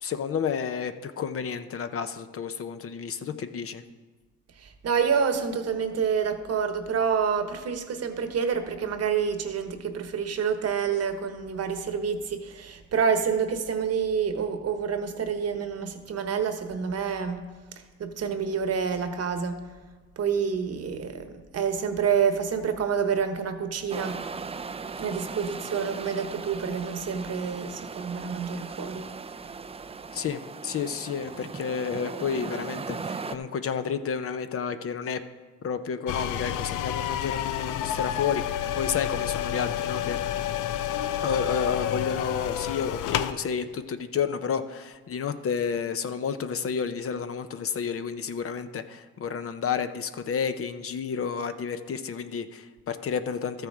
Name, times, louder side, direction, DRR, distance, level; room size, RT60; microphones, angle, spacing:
voice 1, 0.0-3.8 30.1-35.2 35.6-40.2 41.2-53.7, left 6 dB, 50° left, 10 dB, 0.7 m, -31 dB
voice 2, 4.6-17.4 18.0-19.6 20.2-24.2 25.0-29.1, right 6 dB, 55° right, 8 dB, 1.2 m, -28 dB
sound 1, 23.9-33.4, right 5 dB, 20° right, 0.4 m, -38 dB
sound 2, 36.1-43.3, left 11 dB, 90° left, 0.5 m, -30 dB
13.0 x 6.7 x 4.8 m, 1.4 s
cardioid pair, 90°, 30 cm